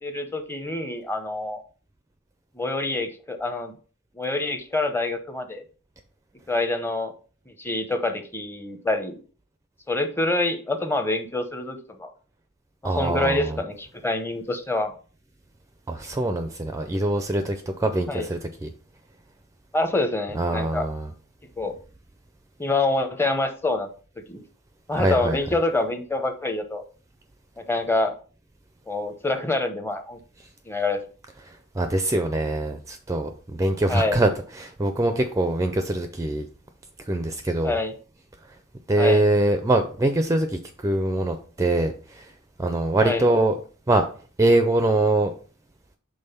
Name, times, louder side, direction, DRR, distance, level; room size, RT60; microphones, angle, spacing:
voice 1, 0.0-1.6 2.5-3.7 4.2-5.6 6.5-7.1 7.5-9.2 9.9-12.1 12.8-14.9 18.1-18.3 19.7-20.9 21.6-21.7 22.6-23.9 24.2-24.4 24.9-26.8 27.6-28.1 28.9-30.2 30.7-31.0 33.9-34.2 37.6-37.9 39.0-39.2 43.0-43.3, left 2 dB, 10° left, 7 dB, 0.7 m, -26 dB
voice 2, 12.8-13.5 15.9-18.7 20.4-21.1 24.9-25.4 31.8-34.3 34.6-36.5 37.1-37.7 38.9-41.9 42.6-43.5 43.9-44.0 44.4-45.3, right 2 dB, 15° right, 7 dB, 0.4 m, -23 dB
5.5 x 3.7 x 5.6 m, 0.40 s
head